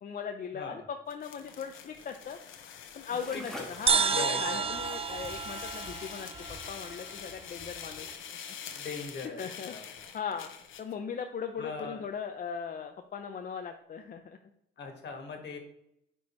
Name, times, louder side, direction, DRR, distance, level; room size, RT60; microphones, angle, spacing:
voice 1, 0.0-2.4 3.0-6.3 6.7-8.6 9.2-10.5 10.8-14.4, left 6 dB, 45° left, 5 dB, 0.5 m, -39 dB
voice 2, 0.5-0.8 3.3-4.7 8.7-9.4 9.7-9.8 11.6-12.1 14.8-15.6, left 4 dB, 60° left, 3 dB, 1.7 m, -40 dB
sound 1, 1.1-10.9, left 8 dB, 75° left, 0.9 m, -45 dB
sound 2, 3.1-8.1, equal, 5° left, 1.5 m, -49 dB
sound 3, 3.9-7.4, right 5 dB, 30° right, 0.5 m, -31 dB
9.3 x 4.5 x 3.1 m, 0.77 s
cardioid pair, 90°, 20 cm